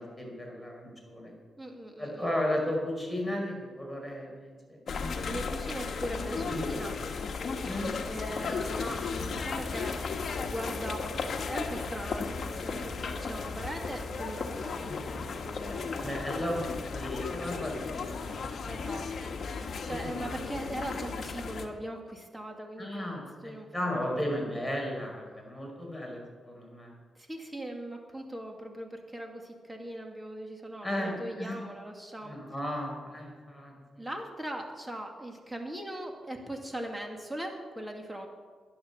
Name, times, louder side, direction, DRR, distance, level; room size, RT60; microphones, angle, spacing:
voice 1, 0.0-1.3 2.0-4.8 6.5-6.6 7.6-8.6 14.8-15.0 16.0-18.6 19.8-20.1 22.8-26.9 30.8-31.6 32.2-34.1, left 1 dB, ahead, -1 dB, 5.1 m, -35 dB
voice 2, 1.6-2.3 4.9-6.9 8.1-16.1 18.7-24.3 27.1-32.4 34.0-38.3, right 1 dB, 15° right, 2 dB, 2.4 m, -40 dB
sound 1, 4.9-21.7, left 4 dB, 60° left, 1.3 m, -35 dB
11.0 x 11.0 x 7.0 m, 1.5 s
cardioid pair, 85°, 0 cm